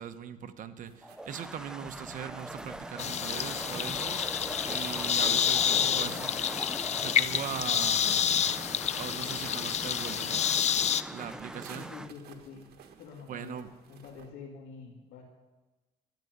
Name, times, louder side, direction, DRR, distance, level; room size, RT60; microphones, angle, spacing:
voice 1, 0.0-4.3 4.7-6.2 7.0-8.7 9.0-10.4 11.1-11.9 13.3-13.7, right 8 dB, 50° right, 9 dB, 1.0 m, -40 dB
sound 1, 0.9-14.3, right 7 dB, 70° right, 1.5 m, -54 dB
sound 2, 1.0-12.1, right 1 dB, 5° right, 0.5 m, -41 dB
sound 3, 3.0-11.0, left 9 dB, 40° left, 0.5 m, -28 dB
voice 2, 5.3-6.4 11.7-12.7 13.0-15.2, left 5 dB, 85° left, -4 dB, 2.3 m, -47 dB
13.5 x 8.4 x 9.4 m, 1.2 s
cardioid pair, 110°, 17 cm